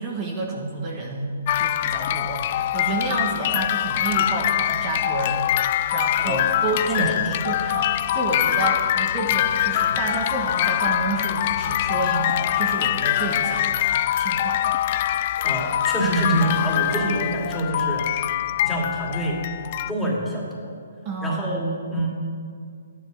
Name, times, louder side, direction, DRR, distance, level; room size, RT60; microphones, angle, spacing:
voice 1, 0.0-5.4 5.9-13.8 14.2-14.6 21.0-21.5, right 3 dB, 30° right, -2 dB, 1.8 m, -29 dB
sound 1, 1.5-19.9, left 12 dB, 40° left, 0.3 m, -24 dB
voice 2, 7.0-7.4 15.4-18.1 18.6-19.4 19.9-20.7 21.2-22.1, right 1 dB, 5° left, -4 dB, 2.8 m, -26 dB
13.0 x 11.0 x 6.1 m, 2.2 s
hypercardioid pair, 150°, 0 cm